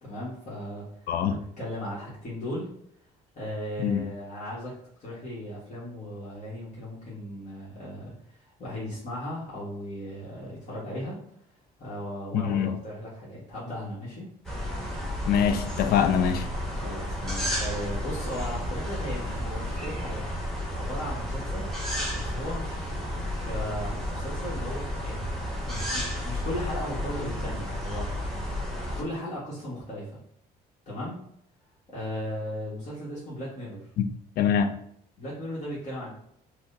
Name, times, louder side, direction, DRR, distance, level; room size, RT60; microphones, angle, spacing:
voice 1, 0.0-2.7 3.3-4.7 5.0-11.2 11.8-14.3 16.7-20.3 20.7-21.7 22.1-28.1 28.9-30.2 30.9-31.2 31.9-33.8 35.2-36.1, equal, 45° left, 1.3 m, -37 dB
voice 2, 1.1-1.4 3.8-4.1 12.3-12.8 15.3-16.5 34.0-34.1 34.4-34.7, left 8 dB, 65° left, 0.4 m, -24 dB
sound 1, 14.4-29.0, left 1 dB, 5° left, 1.0 m, -32 dB
4.6 x 2.1 x 2.6 m
cardioid pair, 110°, 17 cm